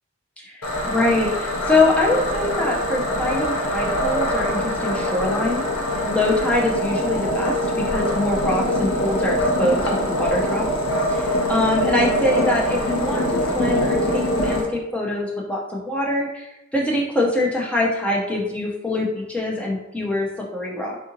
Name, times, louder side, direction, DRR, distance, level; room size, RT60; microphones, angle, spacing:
voice 1, 0.4-10.7 11.1-21.0, left 2 dB, 5° left, -2 dB, 0.3 m, -24 dB
sound 1, 0.6-14.6, equal, 80° left, 0.8 m, -23 dB
3.5 x 2.5 x 2.8 m, 0.92 s
head